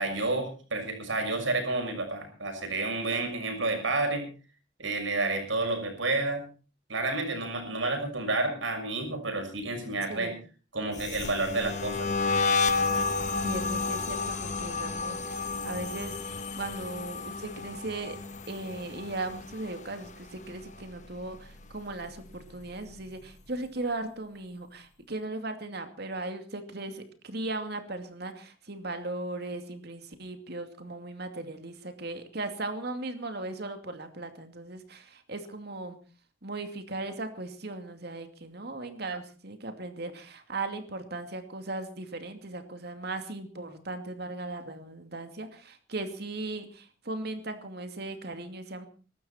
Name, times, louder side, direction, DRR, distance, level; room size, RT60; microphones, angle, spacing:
voice 1, 0.0-4.3 4.8-6.4 6.9-10.3 10.7-12.1, right 2 dB, 85° right, 4 dB, 6.4 m, -30 dB
voice 2, 10.1-10.4 13.4-18.2 18.5-36.0 36.4-48.9, right 2 dB, 55° right, 7 dB, 2.5 m, -37 dB
sound 1, 10.9-20.1 20.4-20.8 21.2-22.7, left 4 dB, 40° left, 1.4 m, -31 dB
22.5 x 12.5 x 4.4 m, 0.38 s
head